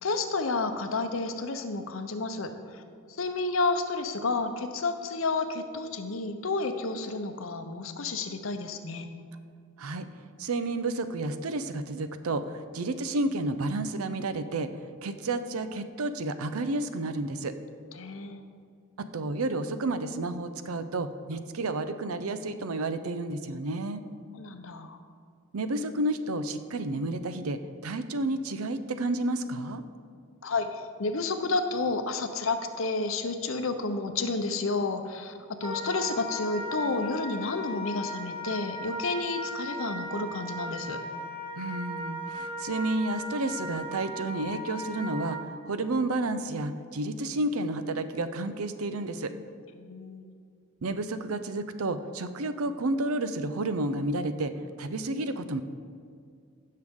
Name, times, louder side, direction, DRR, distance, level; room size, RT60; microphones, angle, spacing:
voice 1, 0.0-2.8 3.2-9.1 18.0-18.4 24.3-25.0 30.4-41.0 49.8-50.3, left 3 dB, 70° left, 7 dB, 0.8 m, -31 dB
voice 2, 10.4-14.7 15.0-17.5 19.0-24.0 25.5-29.8 41.6-49.3 50.8-54.5 54.8-55.6, right 2 dB, 90° right, 11 dB, 0.6 m, -31 dB
Wind instrument woodwind instrument, 35.6-45.5, equal, 25° right, 1.0 m, -37 dB
15.5 x 6.6 x 3.7 m, 2.2 s
head